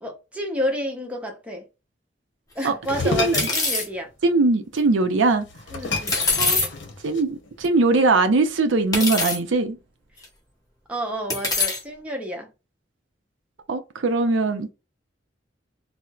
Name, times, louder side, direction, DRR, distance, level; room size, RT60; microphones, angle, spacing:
voice 1, 0.0-1.7 2.5-4.1 5.7-6.2 10.9-12.5, equal, 5° right, 0.8 m, -30 dB
sound 1, 2.6-2.7 3.3-3.9 6.1-6.7 7.6-7.7 8.9-9.4 10.2-10.3 11.3-11.8, left 3 dB, 20° left, 1.0 m, -23 dB
sound 2, 2.8-3.6 5.0-5.1 5.4-7.5, left 3 dB, 75° left, 0.8 m, -30 dB
voice 2, 3.0-3.4 4.2-5.5 6.4-6.6 7.0-9.8 13.7-14.7, right 3 dB, 85° right, 0.5 m, -21 dB
4.3 x 2.0 x 2.3 m
head